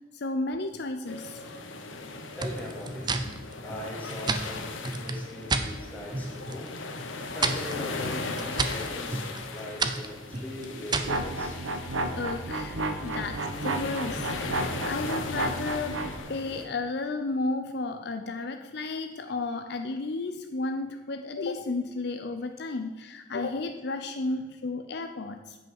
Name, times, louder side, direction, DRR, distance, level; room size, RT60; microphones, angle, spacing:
voice 1, 0.1-1.4 6.4-6.6 12.1-16.0 16.3-25.6, left 3 dB, 55° left, 6 dB, 0.6 m, -33 dB
sound 1, 1.1-16.6, left 3 dB, 85° left, 1.1 m, -38 dB
voice 2, 2.3-3.1 3.6-6.7 7.3-11.6 24.3-24.4, left 1 dB, 10° left, -3 dB, 2.3 m, -40 dB
sound 2, 2.4-5.7 6.1-6.7 7.0-11.2, right 3 dB, 25° right, 0.6 m, -31 dB
sound 3, 11.1-16.2, right 2 dB, 90° right, 0.9 m, -32 dB
9.1 x 5.5 x 7.1 m, 1.3 s
head